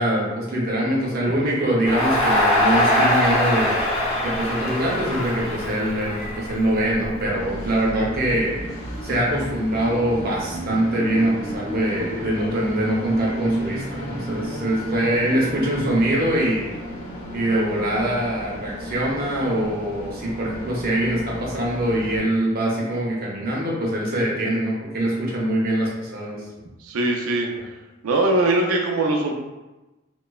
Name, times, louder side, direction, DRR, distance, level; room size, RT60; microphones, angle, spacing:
voice 1, 0.0-3.7 4.2-8.5 9.0-16.7 17.3-26.4, right 1 dB, 45° right, -4 dB, 0.7 m, -23 dB
Crowd, 1.8-7.0, left 1 dB, 30° left, 0.6 m, -22 dB
Train, 3.7-22.2, equal, 85° left, 0.9 m, -34 dB
voice 2, 26.8-27.5 28.0-29.3, right 2 dB, 90° right, 1 dB, 0.4 m, -21 dB
3.0 x 2.0 x 2.3 m, 1.1 s
head